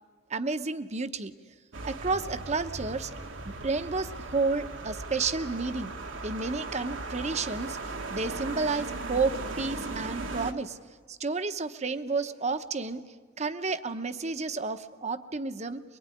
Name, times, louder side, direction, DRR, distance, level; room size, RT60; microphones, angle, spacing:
voice 1, 0.3-1.3 1.8-3.1 3.4-5.9 6.2-7.8 8.1-10.8 11.1-13.0 13.4-15.8, right 4 dB, 35° right, 10 dB, 1.0 m, -31 dB
sound 1, 1.7-10.5, right 2 dB, 80° right, 1.7 m, -37 dB
23.0 x 23.0 x 9.9 m, 1.5 s
head